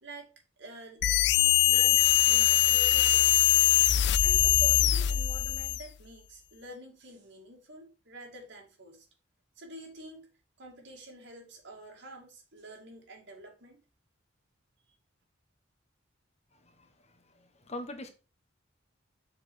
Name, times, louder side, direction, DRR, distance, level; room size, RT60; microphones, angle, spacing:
voice 1, 0.0-1.0 1.4-3.5 4.2-9.1 9.6-10.3 10.6-13.8, right 1 dB, 65° right, 2.4 m, -48 dB
sound 1, 1.0-5.9, left 12 dB, 60° left, 0.4 m, -23 dB
voice 2, 16.5-18.1, left 1 dB, 35° left, 1.2 m, -44 dB
6.9 x 4.9 x 4.3 m
head